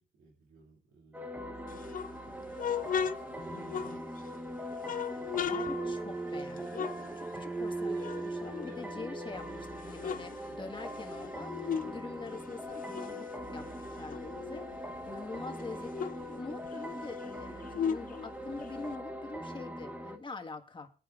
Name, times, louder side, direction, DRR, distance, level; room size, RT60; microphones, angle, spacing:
voice 1, 0.0-4.2 14.9-15.2, right 2 dB, 85° right, -2 dB, 2.7 m, -60 dB
sound 1, 1.1-20.2, right 1 dB, 10° right, 1.0 m, -40 dB
sound 2, 1.7-4.4 4.8-7.7 8.0-9.3 9.7-12.0 12.3-14.8 15.2-15.3 15.5-18.9, left 7 dB, 45° left, 0.5 m, -38 dB
voice 2, 5.0-20.9, left 3 dB, 25° left, 5 dB, 1.6 m, -45 dB
21.5 x 10.0 x 2.5 m, 0.36 s
cardioid pair, 90°, 20 cm